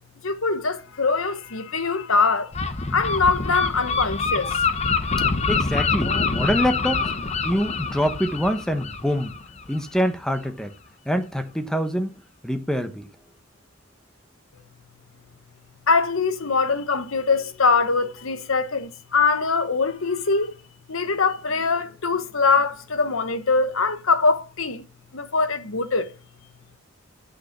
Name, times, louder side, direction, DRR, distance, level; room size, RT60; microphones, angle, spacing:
voice 1, 0.2-2.5 2.9-4.5 15.9-20.5 20.9-24.8 25.1-26.0, left 4 dB, 75° left, 1.1 m, -22 dB
Gull seagull, 2.5-10.0, left 4 dB, 30° left, 0.8 m, -25 dB
voice 2, 5.5-7.0 7.4-9.3 9.7-10.7 11.1-13.1, equal, 5° left, 0.9 m, -25 dB
8.4 x 6.5 x 5.9 m
head